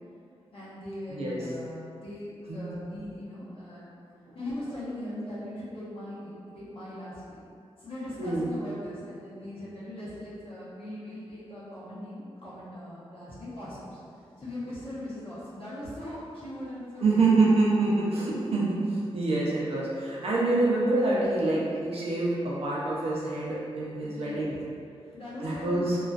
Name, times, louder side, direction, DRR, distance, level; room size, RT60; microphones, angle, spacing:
voice 1, 0.5-3.9 4.3-7.4 7.8-14.0 14.4-17.3 24.0-24.5 25.1-25.9, left 1 dB, 60° left, -11 dB, 0.9 m, -40 dB
voice 2, 1.1-1.5 2.5-2.6 8.2-8.5 17.0-24.6 25.4-26.0, right 2 dB, 70° right, -6 dB, 0.5 m, -26 dB
2.3 x 2.3 x 2.4 m, 2.4 s
wide cardioid pair, 140°, 11 cm